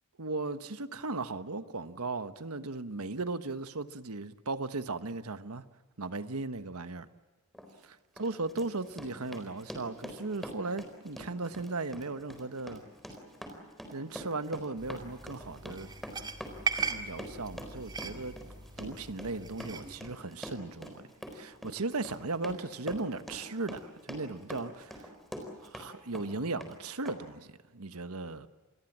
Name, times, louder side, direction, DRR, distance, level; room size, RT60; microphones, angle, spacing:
voice 1, 0.2-5.7 6.0-7.1 7.8-12.8 13.9-15.9 16.8-18.4 18.8-21.0 21.3-25.1 25.6-28.5, right 3 dB, 75° right, 1.3 m, -37 dB
Run, 7.5-7.7 8.2-25.9 26.2-26.8 27.1-27.2, equal, ahead, 4.2 m, -44 dB
sound 1, 14.8-20.0, right 5 dB, 20° right, 2.1 m, -39 dB
28.5 x 21.5 x 7.5 m
head